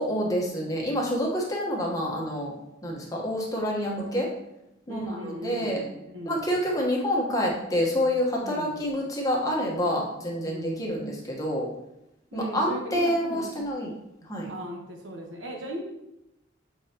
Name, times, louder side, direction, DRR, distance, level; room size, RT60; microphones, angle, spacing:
voice 1, 0.0-2.5 2.8-4.3 4.9-5.8 6.2-11.7 12.3-13.9 14.3-14.5, equal, 20° left, -2 dB, 1.2 m, -27 dB
voice 2, 4.9-6.6 8.4-8.8 10.4-11.0 12.3-13.5 14.5-15.8, equal, 80° right, 2 dB, 1.1 m, -37 dB
7.0 x 5.3 x 2.9 m, 0.89 s
head